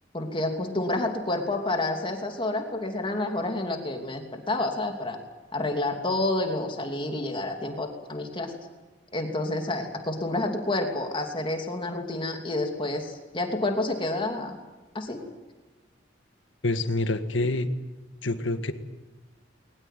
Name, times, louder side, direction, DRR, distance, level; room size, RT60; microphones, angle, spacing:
voice 1, 0.1-5.2 5.5-8.6 9.1-14.6 14.9-15.2, left 2 dB, 30° left, 3 dB, 2.8 m, -29 dB
voice 2, 16.6-17.7 18.2-18.7, left 2 dB, 90° left, 9 dB, 1.7 m, -26 dB
21.5 x 20.5 x 9.2 m, 1.2 s
head